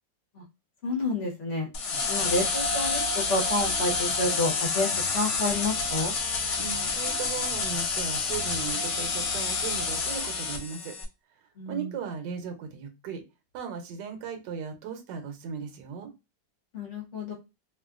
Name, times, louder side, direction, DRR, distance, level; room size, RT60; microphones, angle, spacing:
voice 1, 0.8-1.7 2.1-3.0 3.3-6.1 11.6-11.9 16.7-17.3, left 2 dB, 50° left, -2 dB, 1.0 m, -29 dB
sound 1, 1.7-11.0, left 4 dB, 80° left, 0.6 m, -28 dB
voice 2, 6.5-10.9 11.7-13.2 13.5-16.1, right 6 dB, 70° right, 6 dB, 1.3 m, -37 dB
3.0 x 2.4 x 2.3 m, 0.25 s
omnidirectional pair, 2.0 m